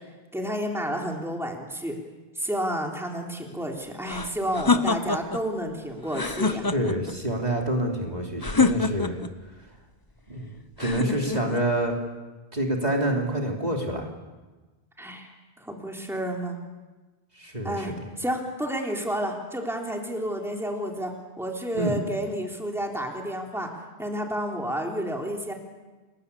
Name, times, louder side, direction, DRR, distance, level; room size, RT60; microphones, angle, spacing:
voice 1, 0.3-1.9 2.4-6.7 15.0-15.3 15.6-16.6 17.6-23.7 24.0-25.5, equal, ahead, 1 dB, 3.4 m, -30 dB
sound 1, 4.0-5.4 6.1-7.1 8.4-9.3 10.8-11.6, left 4 dB, 20° left, 1.0 m, -25 dB
voice 2, 6.4-9.2 10.3-10.5 10.8-12.0 12.5-14.1 17.4-17.9 21.7-22.0, right 1 dB, 40° right, 0 dB, 3.5 m, -27 dB
30.0 x 21.5 x 8.4 m, 1.2 s
omnidirectional pair, 1.1 m